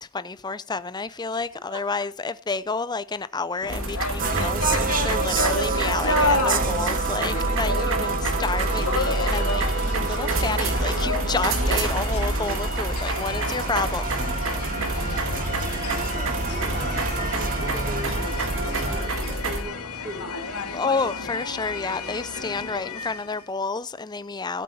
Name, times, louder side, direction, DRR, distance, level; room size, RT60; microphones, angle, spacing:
voice 1, 0.0-14.3 20.6-24.6, left 4 dB, 20° left, 0.6 m, -30 dB
sound 1, 3.6-23.4, left 3 dB, 75° left, 2.0 m, -31 dB
sound 2, 3.7-19.6, right 2 dB, 60° right, 2.1 m, -29 dB
sound 3, 4.2-19.1, right 4 dB, 40° right, 0.9 m, -29 dB
voice 2, 11.7-12.1 15.1-20.4 22.3-22.6, equal, 20° right, 4.1 m, -41 dB
17.0 x 8.2 x 4.2 m
head